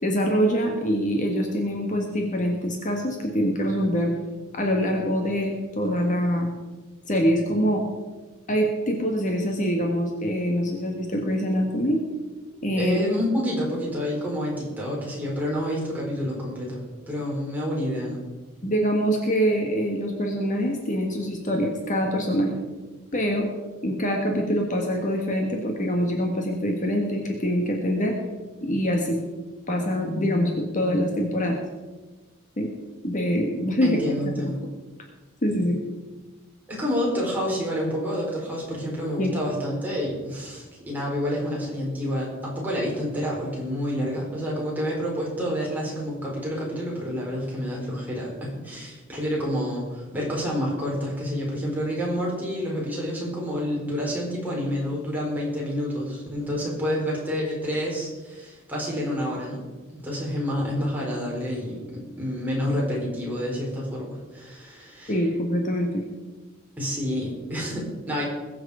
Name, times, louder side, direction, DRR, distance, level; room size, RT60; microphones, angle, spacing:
voice 1, 0.0-4.1 4.5-6.5 7.1-7.8 8.5-12.0 12.6-13.0 18.6-22.6 23.1-23.5 23.8-28.1 28.6-29.2 29.7-31.6 32.6-32.7 33.0-34.0 35.4-35.8 39.2-39.3 65.1-66.0, equal, 40° left, 1 dB, 1.6 m, -24 dB
voice 2, 12.7-18.2 33.8-34.6 36.7-59.6 59.9-61.8 62.2-65.2 66.8-68.2, equal, 10° right, -4 dB, 4.6 m, -28 dB
21.0 x 8.0 x 5.0 m, 1.2 s
head